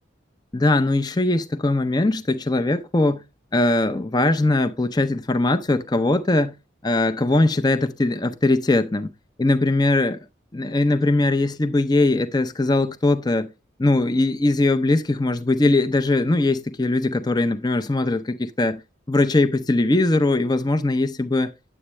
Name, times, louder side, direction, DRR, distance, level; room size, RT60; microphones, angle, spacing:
voice 1, 0.5-3.2 3.5-6.5 6.8-9.1 9.4-10.2 10.5-13.5 13.8-18.8 19.1-21.5, left 2 dB, 20° left, 0.5 m, -20 dB
9.9 x 8.2 x 3.1 m
head